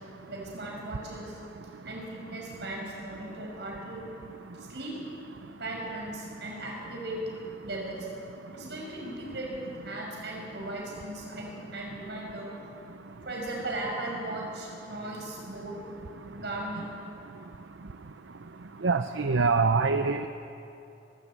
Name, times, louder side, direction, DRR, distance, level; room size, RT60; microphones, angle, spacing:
voice 1, 0.3-1.4 1.8-4.1 4.7-5.0 5.6-7.2 7.6-8.1 8.5-12.5 13.2-15.8 16.3-16.9 19.7-19.8, right 1 dB, 65° right, -1 dB, 6.0 m, -37 dB
voice 2, 18.8-20.3, right 4 dB, 90° right, 9 dB, 0.6 m, -24 dB
22.5 x 13.5 x 8.8 m, 2.9 s
head